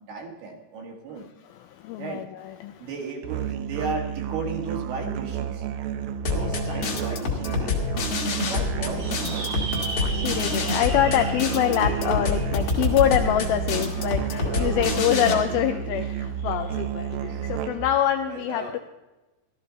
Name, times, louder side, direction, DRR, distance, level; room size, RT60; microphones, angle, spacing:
voice 1, 0.1-1.3 2.0-2.3 2.8-5.7 6.3-8.2 8.5-9.5 15.1-15.3 15.7-15.8 17.3-17.8 18.2-18.8, right 4 dB, 70° right, 1 dB, 3.7 m, -35 dB
voice 2, 1.4-2.9 6.8-6.9 9.9-18.8, left 11 dB, 85° left, 7 dB, 2.1 m, -25 dB
Musical instrument, 3.2-18.0, right 10 dB, 90° right, 3.0 m, -31 dB
sound 1, 6.2-15.3, left 4 dB, 50° left, 2.0 m, -27 dB
sound 2, 9.0-13.7, right 2 dB, 50° right, 1.2 m, -37 dB
15.0 x 13.0 x 4.0 m, 1.1 s
omnidirectional pair, 4.8 m